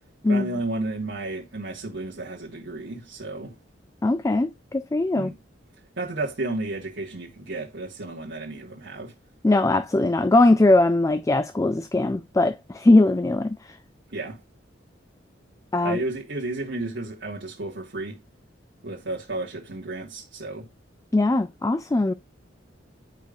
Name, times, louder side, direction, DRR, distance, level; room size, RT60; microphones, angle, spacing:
voice 1, 0.3-3.5 5.2-5.4 5.9-9.1 14.1-14.4 15.8-18.2 18.8-20.7, right 2 dB, 65° right, 1.5 m, -32 dB
voice 2, 4.0-5.3 9.4-13.8 15.7-16.0 21.1-22.1, left 2 dB, 15° left, 0.3 m, -20 dB
10.0 x 5.1 x 2.4 m
head